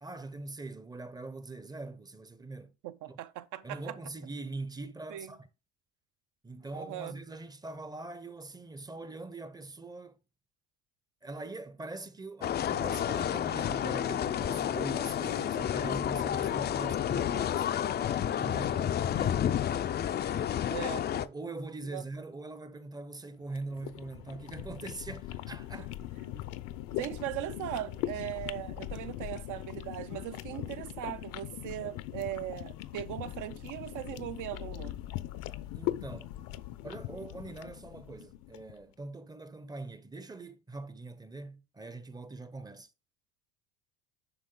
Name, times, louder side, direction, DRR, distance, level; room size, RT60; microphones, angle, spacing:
voice 1, 0.0-2.7 3.1-3.2 3.6-5.5 6.4-10.2 11.2-19.7 20.3-20.6 21.1-25.9 35.7-36.3 36.8-42.9, right 2 dB, 10° right, 0.7 m, -43 dB
voice 2, 2.8-4.0 5.1-5.3 6.7-7.2 20.7-21.1 21.9-22.0 26.3-26.4 26.9-34.9, right 13 dB, 60° right, 0.7 m, -39 dB
Walking Around Outside The Kremlin in the Afternoon, 12.4-21.3, left 10 dB, 30° left, 0.4 m, -30 dB
sound 1, 23.5-38.7, left 14 dB, 70° left, 0.8 m, -40 dB
11.0 x 3.6 x 3.8 m
cardioid pair, 130°, 34 cm